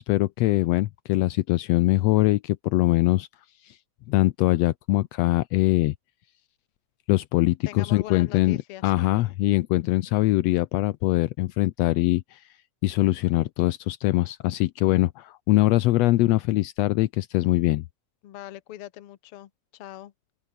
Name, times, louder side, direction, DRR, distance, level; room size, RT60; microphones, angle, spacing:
voice 1, 0.0-3.3 3.6-3.8 4.1-5.9 7.1-8.6 8.8-12.4 12.8-17.8, left 17 dB, 80° left, 1.6 m, -22 dB
voice 2, 7.7-9.1 18.2-20.1, left 13 dB, 60° left, 1.8 m, -41 dB
open air
omnidirectional pair, 3.5 m